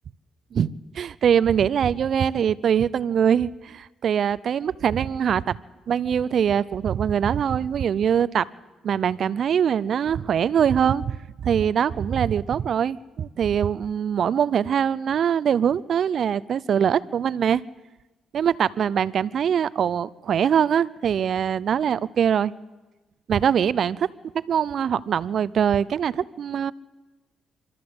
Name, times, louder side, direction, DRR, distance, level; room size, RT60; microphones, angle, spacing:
voice 1, 0.5-5.6 5.9-8.5 8.8-11.2 11.4-17.6 18.3-22.5 23.3-24.1 24.5-26.7, right 8 dB, 60° right, 19 dB, 0.5 m, -23 dB
25.0 x 13.5 x 7.8 m, 1.1 s
cardioid pair, 90°, 0 cm